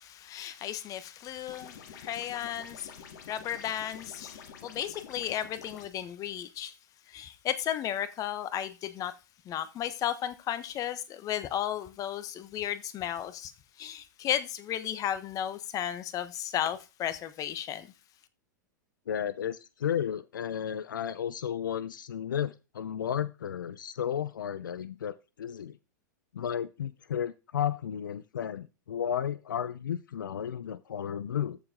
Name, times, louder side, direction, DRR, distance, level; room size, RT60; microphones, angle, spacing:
voice 1, 0.0-6.7 7.1-9.1 9.4-13.5 13.8-17.9, left 11 dB, 35° left, 1.2 m, -34 dB
sound 1, 1.5-5.9, left 6 dB, 65° left, 2.0 m, -48 dB
voice 2, 19.1-25.8 26.3-31.6, left 9 dB, 85° left, 0.5 m, -33 dB
14.0 x 4.8 x 3.7 m
hypercardioid pair, 110°, 11 cm